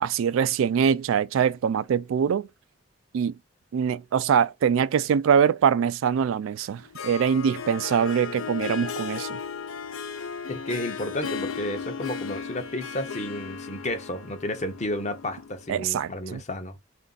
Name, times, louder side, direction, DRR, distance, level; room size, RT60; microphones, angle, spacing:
voice 1, 0.0-2.5 3.1-3.3 3.7-9.4 15.7-16.4, right 7 dB, 80° right, 0.3 m, -23 dB
Harp, 6.7-15.7, left 6 dB, 90° left, 0.5 m, -35 dB
voice 2, 10.5-16.8, left 1 dB, 35° left, 0.7 m, -32 dB
3.3 x 2.5 x 3.9 m
head